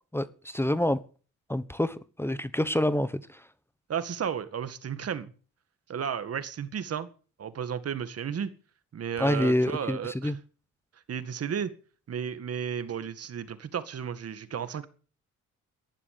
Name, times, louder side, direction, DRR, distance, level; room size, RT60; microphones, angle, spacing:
voice 1, 0.1-1.0 1.5-3.2 9.2-10.4, left 1 dB, 10° left, 1.1 m, -27 dB
voice 2, 3.9-5.3 5.9-7.1 7.4-8.5 8.9-10.4 11.1-11.7 12.1-14.9, right 8 dB, 55° right, 2.0 m, -33 dB
14.0 x 11.0 x 6.8 m
cardioid pair, 90°, 30 cm